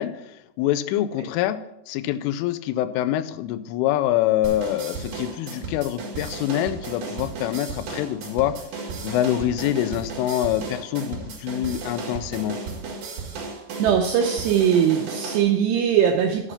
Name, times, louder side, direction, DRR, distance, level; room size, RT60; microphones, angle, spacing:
voice 1, 0.0-1.6 1.9-12.6, left 12 dB, 90° left, 12 dB, 3.1 m, -25 dB
sound 1, 4.4-15.4, right 4 dB, 60° right, 3.1 m, -34 dB
voice 2, 13.8-16.5, right 8 dB, 85° right, 3 dB, 2.4 m, -20 dB
10.0 x 6.0 x 5.6 m, 0.88 s
omnidirectional pair, 5.6 m